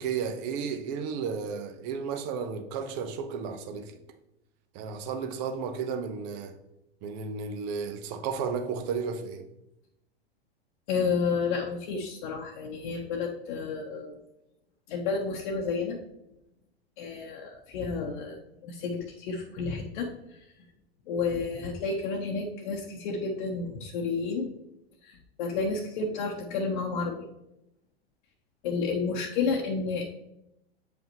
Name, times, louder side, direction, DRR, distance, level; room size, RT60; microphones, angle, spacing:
voice 1, 0.0-3.9 4.7-6.6 7.0-9.5, right 6 dB, 40° right, 1.0 m, -33 dB
voice 2, 10.9-14.1 14.9-16.0 17.0-20.1 21.1-24.5 25.0-27.2 28.6-30.1, left 4 dB, 50° left, 1.0 m, -31 dB
7.8 x 5.2 x 3.0 m
figure-of-eight pair, 100°, 31 cm